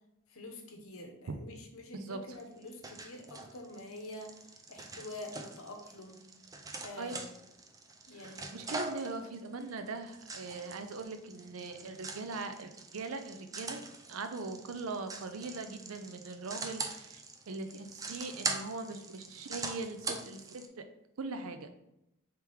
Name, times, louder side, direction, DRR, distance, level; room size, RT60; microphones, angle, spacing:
voice 1, 0.3-4.4 4.7-6.3 6.8-7.3 8.1-8.6, left 1 dB, 75° left, 4 dB, 0.8 m, -46 dB
sound 1, 2.3-20.7, right 3 dB, 15° right, 0.4 m, -43 dB
voice 2, 8.1-13.8 14.1-17.2 17.5-20.8 21.2-21.7, right 3 dB, 75° right, 8 dB, 0.5 m, -41 dB
3.4 x 3.3 x 4.6 m, 0.83 s
head